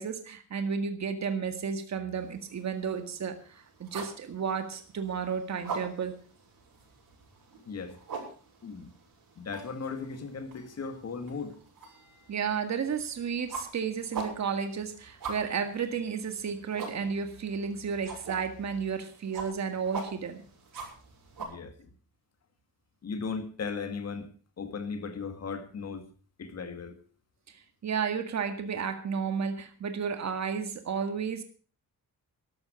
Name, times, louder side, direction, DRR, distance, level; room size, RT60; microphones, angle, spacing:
voice 1, 0.0-6.1 12.3-20.4 27.5-31.4, right 6 dB, 50° right, 7 dB, 1.9 m, -32 dB
sound 1, 2.2-21.4, right 4 dB, 65° right, 7.3 m, -44 dB
voice 2, 7.7-8.0 8.6-8.9 9.4-11.6 21.4-21.9 23.0-24.3 24.6-26.1 26.4-27.0, left 5 dB, 45° left, 7 dB, 2.0 m, -37 dB
13.0 x 12.5 x 6.3 m, 0.40 s
wide cardioid pair, 150°, 36 cm